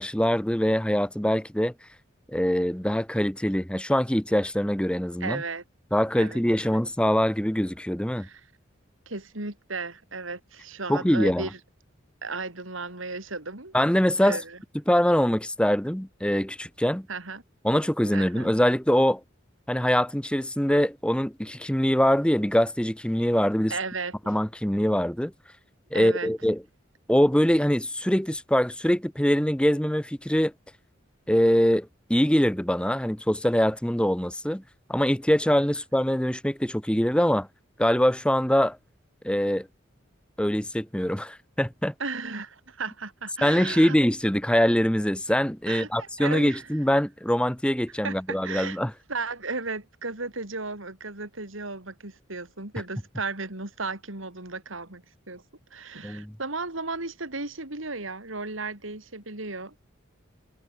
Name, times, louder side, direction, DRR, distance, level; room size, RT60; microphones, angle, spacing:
voice 1, 0.0-1.7 2.3-5.4 5.9-8.3 10.9-11.5 13.7-14.4 14.9-17.1 17.6-19.2 19.7-23.7 24.3-25.3 25.9-26.6 27.1-30.5 31.3-34.6 34.9-37.5 37.8-38.8 39.2-39.7 40.4-41.9 43.4-48.9 56.0-56.3, equal, 5° left, 1.2 m, -23 dB
voice 2, 5.2-5.6 6.2-6.8 8.2-8.4 9.1-11.6 12.2-13.7 14.2-14.6 17.1-17.4 18.1-18.5 23.7-24.3 25.9-26.3 42.0-44.0 45.7-46.7 48.0-48.8 49.1-55.4 55.7-59.7, right 3 dB, 80° right, 4.2 m, -35 dB
head